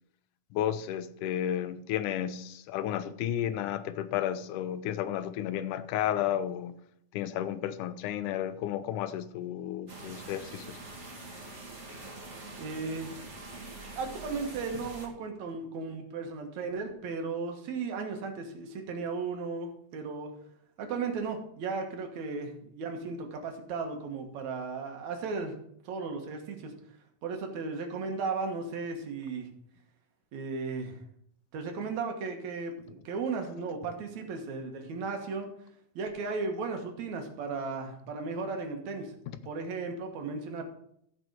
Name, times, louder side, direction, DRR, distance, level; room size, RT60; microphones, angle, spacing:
voice 1, 0.5-6.8 7.1-10.8, left 11 dB, 85° left, 2.1 m, -32 dB
sound 1, 9.9-15.1, right 2 dB, 30° right, 1.6 m, -44 dB
voice 2, 12.6-13.2 13.6-20.3 20.8-25.6 25.8-26.7 27.2-29.5 30.3-31.0 31.5-35.5 36.0-39.1 39.5-40.7, right 4 dB, 65° right, 2.6 m, -35 dB
14.5 x 5.3 x 4.7 m
omnidirectional pair, 3.6 m